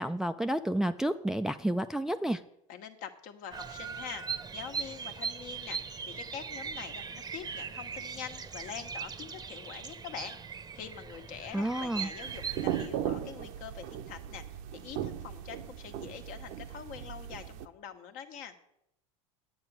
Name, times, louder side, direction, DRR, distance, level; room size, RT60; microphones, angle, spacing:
voice 1, 0.0-2.4 11.5-12.1, right 1 dB, 5° right, 8 dB, 0.4 m, -30 dB
voice 2, 2.7-5.8 6.1-18.5, left 8 dB, 55° left, 6 dB, 1.3 m, -45 dB
Bird vocalization bird call bird song, 3.5-12.9, right 6 dB, 25° right, 0.8 m, -40 dB
sound 1, 12.2-17.7, right 11 dB, 60° right, 0.7 m, -37 dB
9.4 x 7.8 x 6.2 m, 0.81 s
hypercardioid pair, 95°, 17 cm